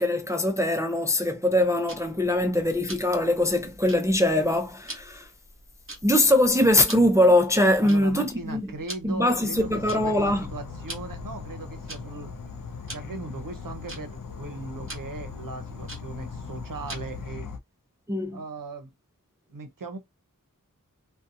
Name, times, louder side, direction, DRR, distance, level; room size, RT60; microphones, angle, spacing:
voice 1, 0.0-5.3 6.0-8.7 9.0-10.4 18.1-18.4, left 1 dB, 10° right, 0.4 m, -22 dB
Tick-tock, 1.9-17.3, right 1 dB, 40° right, 1.0 m, -46 dB
voice 2, 7.8-12.3 12.9-17.5 18.3-18.9 19.5-20.0, right 3 dB, 80° right, 0.7 m, -38 dB
Insect / Frog, 9.5-17.6, left 5 dB, 75° left, 0.5 m, -39 dB
2.6 x 2.2 x 2.5 m
wide cardioid pair, 40°, 33 cm